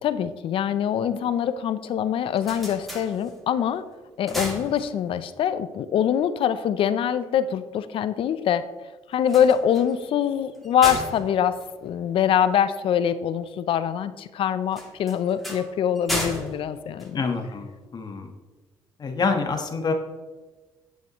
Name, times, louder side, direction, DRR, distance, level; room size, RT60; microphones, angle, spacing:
voice 1, 0.0-3.9 4.2-8.6 9.1-17.2, left 9 dB, 65° left, 13 dB, 0.6 m, -24 dB
sound 1, 2.1-3.7 4.0-5.4 9.1-12.6 14.7-17.7, equal, ahead, 2.4 m, -35 dB
voice 2, 17.1-18.3 19.0-19.9, left 4 dB, 45° left, 5 dB, 1.3 m, -27 dB
9.7 x 8.9 x 3.1 m, 1.3 s
supercardioid pair, 75°, 10 cm